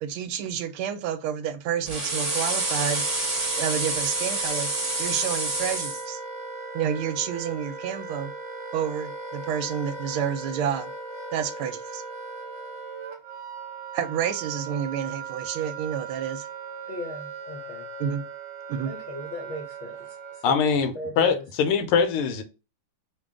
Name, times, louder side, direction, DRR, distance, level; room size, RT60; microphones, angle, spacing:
voice 1, 0.0-3.0 3.6-4.7 5.0-6.2 6.7-8.3 8.7-10.9 11.3-12.0 13.9-16.5 18.0-18.2 18.7-18.9, right 8 dB, 80° right, 1.4 m, -29 dB
Wind instrument woodwind instrument, 1.8-20.6, right 3 dB, 60° right, 1.3 m, -38 dB
sound 1, 1.9-6.0, right 2 dB, 30° right, 0.6 m, -28 dB
voice 2, 16.9-17.9 18.8-21.4, equal, 55° left, 0.8 m, -38 dB
voice 3, 20.4-22.4, left 6 dB, 85° left, 1.6 m, -23 dB
3.7 x 2.3 x 3.6 m
omnidirectional pair, 2.4 m